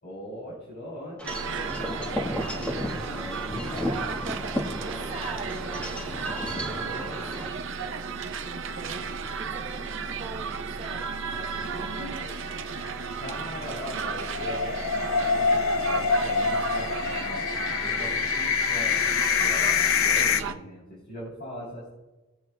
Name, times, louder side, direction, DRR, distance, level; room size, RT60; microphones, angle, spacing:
voice 1, 0.0-4.1 4.8-5.2 6.4-7.2 11.6-12.2 13.1-17.4 17.8-19.0 19.3-21.9, equal, 50° left, -5 dB, 3.4 m, -40 dB
Wind chime / Wind, 1.2-7.5, equal, 5° left, 1.3 m, -34 dB
sound 1, 1.2-20.5, right 5 dB, 65° right, 0.7 m, -34 dB
voice 2, 1.5-1.9 3.8-12.6, right 3 dB, 30° right, -2 dB, 0.7 m, -42 dB
sound 2, 5.5-6.4 6.7-6.8 7.1-7.2 11.4-20.4, left 6 dB, 85° left, 0.6 m, -26 dB
19.5 x 7.2 x 2.2 m, 1.1 s
head